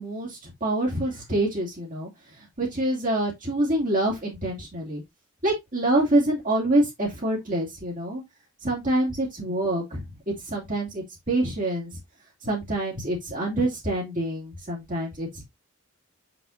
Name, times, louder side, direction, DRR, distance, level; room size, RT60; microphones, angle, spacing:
voice 1, 0.0-5.0 5.4-8.2 8.6-11.9 12.4-15.4, right 1 dB, 40° right, 2.6 m, -26 dB
6.8 x 6.0 x 2.6 m
head